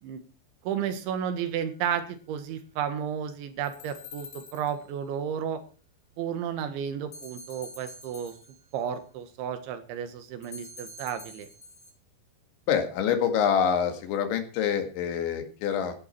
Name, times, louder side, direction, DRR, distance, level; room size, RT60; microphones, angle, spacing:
voice 1, 0.6-5.6 6.2-8.3 8.7-11.5, right 8 dB, 80° right, 9 dB, 4.0 m, -32 dB
sound 1, 3.6-5.0 7.1-8.8 10.4-11.9, left 2 dB, 15° left, 6.8 m, -47 dB
voice 2, 12.7-15.9, left 8 dB, 80° left, 6 dB, 4.4 m, -26 dB
17.0 x 12.0 x 4.5 m, 0.37 s
omnidirectional pair, 5.3 m